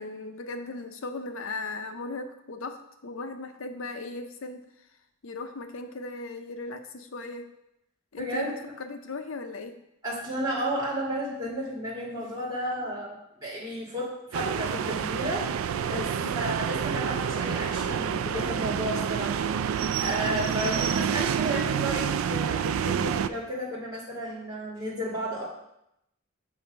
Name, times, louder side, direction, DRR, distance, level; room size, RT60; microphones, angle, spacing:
voice 1, 0.0-4.7 5.2-7.5 8.1-9.8 16.2-16.4, left 3 dB, 70° left, 7 dB, 0.6 m, -37 dB
voice 2, 8.2-8.7 10.0-15.5 15.8-25.4, right 1 dB, 15° right, -7 dB, 2.1 m, -33 dB
sound 1, 14.3-23.3, right 7 dB, 75° right, 0.3 m, -28 dB
7.2 x 3.4 x 5.2 m, 0.81 s
head